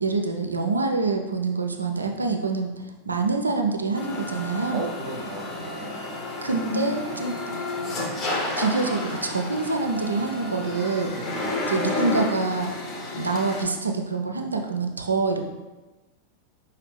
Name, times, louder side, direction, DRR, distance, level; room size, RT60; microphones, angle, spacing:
voice 1, 0.0-4.8 6.4-7.4 8.6-11.1 11.7-12.7 13.2-15.4, right 3 dB, 80° right, 4 dB, 0.4 m, -26 dB
sound 1, 3.9-13.7, left 2 dB, 30° left, 0.8 m, -31 dB
voice 2, 4.7-6.0 11.1-11.7, right 3 dB, 40° right, 1 dB, 0.8 m, -36 dB
5.0 x 2.7 x 3.3 m, 1.1 s
figure-of-eight pair, 90°, 0 cm